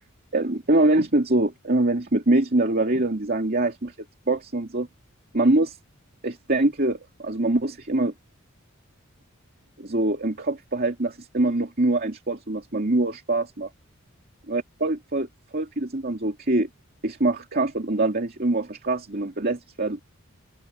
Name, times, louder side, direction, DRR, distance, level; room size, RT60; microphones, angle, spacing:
voice 1, 0.3-3.9 4.3-4.9 5.3-5.8 6.2-8.1 9.8-13.7 14.5-15.3 15.5-16.7 17.0-20.0, right 2 dB, 45° right, 2.6 m, -24 dB
open air
head